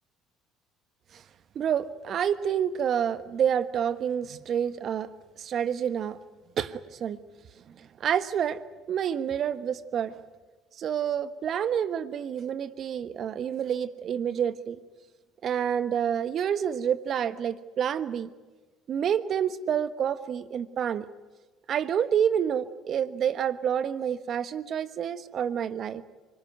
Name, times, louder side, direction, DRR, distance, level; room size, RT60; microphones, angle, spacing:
voice 1, 1.5-5.1 5.4-6.2 6.6-7.2 7.7-8.6 8.9-10.2 10.8-14.8 15.4-18.3 18.9-21.1 21.7-26.0, right 8 dB, 50° right, 14 dB, 1.3 m, -28 dB
25.0 x 20.0 x 9.3 m, 1.3 s
hypercardioid pair, 65°, 0 cm